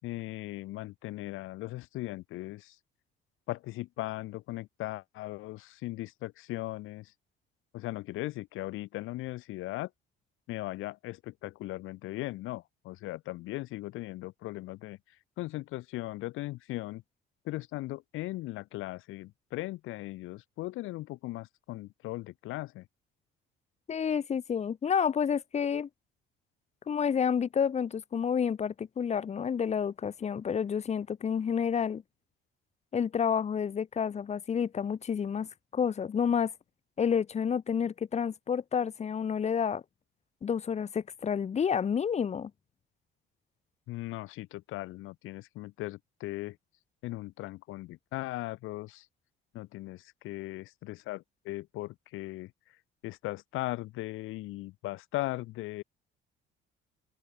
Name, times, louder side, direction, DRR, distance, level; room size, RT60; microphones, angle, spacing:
voice 1, 0.0-2.8 3.5-7.1 7.7-9.9 10.5-15.0 15.4-17.0 17.4-22.8 43.9-46.6 47.0-49.1 49.5-52.5 53.0-55.8, left 18 dB, 85° left, 4.9 m, -38 dB
voice 2, 23.9-25.9 26.9-32.0 32.9-36.5 37.0-39.8 40.4-42.5, left 7 dB, 35° left, 5.1 m, -29 dB
open air
cardioid pair, 150°, 20 cm